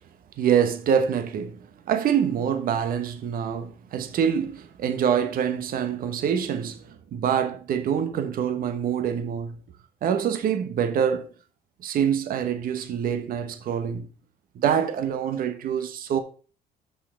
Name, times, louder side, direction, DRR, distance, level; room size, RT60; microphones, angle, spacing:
voice 1, 0.4-9.6 10.0-11.3 11.8-14.1 14.5-16.2, right 8 dB, 60° right, 1.1 m, -25 dB
6.5 x 5.6 x 5.0 m
cardioid pair, 110°, 17 cm